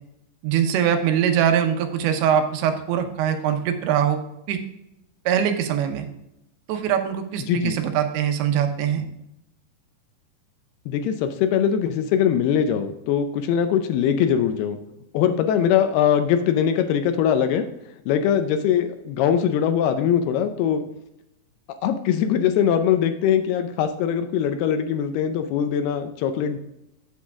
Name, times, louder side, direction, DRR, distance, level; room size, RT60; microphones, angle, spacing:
voice 1, 0.4-4.2 4.5-4.6 5.3-6.1 6.7-9.1, right 9 dB, 80° right, 6 dB, 3.1 m, -22 dB
voice 2, 10.9-14.8 15.1-17.7 18.1-20.8 21.8-26.6, left 8 dB, 80° left, 8 dB, 2.4 m, -21 dB
8.8 x 7.4 x 3.5 m, 0.85 s
omnidirectional pair, 5.1 m